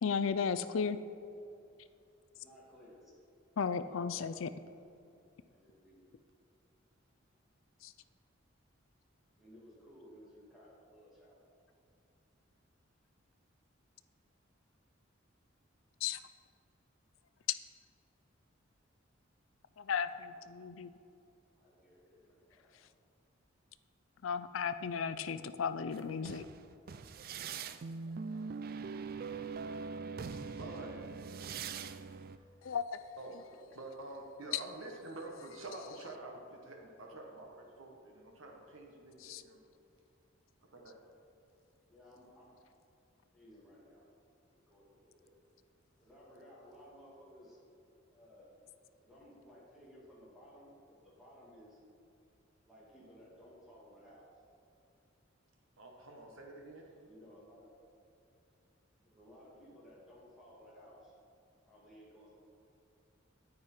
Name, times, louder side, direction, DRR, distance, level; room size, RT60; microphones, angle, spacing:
voice 1, 0.0-1.0 3.6-4.5 7.8-7.9 16.0-16.2 19.8-20.9 24.2-26.5 32.6-33.2 34.5-34.6 39.2-39.4, left 6 dB, 75° left, 0.4 m, -35 dB
voice 2, 2.4-3.1 3.6-4.2 5.5-6.1 9.3-11.4 20.2-20.4 21.6-22.8 33.5-33.7 41.9-42.5 43.3-44.1 44.5-45.3 46.0-47.6 48.1-48.5 49.0-51.8 52.6-54.2 56.9-57.7 59.0-61.1 61.7-62.3, equal, ahead, 2.6 m, -58 dB
sound 1, 25.9-32.4, right 5 dB, 45° right, 0.4 m, -42 dB
voice 3, 30.5-31.0 32.4-32.5 33.2-33.4 33.7-39.6 40.7-41.0 55.8-56.9, right 2 dB, 80° right, 1.3 m, -48 dB
9.6 x 9.6 x 4.4 m
head